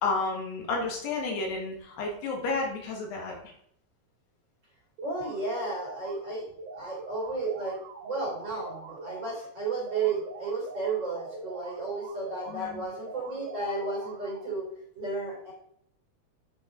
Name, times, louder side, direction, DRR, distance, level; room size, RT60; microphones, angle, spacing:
voice 1, 0.0-3.5 12.5-12.9, left 3 dB, 75° left, 0 dB, 3.6 m, -31 dB
voice 2, 5.0-6.5 6.7-14.7 14.9-15.5, right 3 dB, 30° right, -4 dB, 2.7 m, -33 dB
sound 1, 5.0-6.2 6.6-9.4 9.8-12.6 13.0-14.6, right 3 dB, 65° right, 1.7 m, -43 dB
9.5 x 5.2 x 3.7 m, 0.68 s
omnidirectional pair, 4.9 m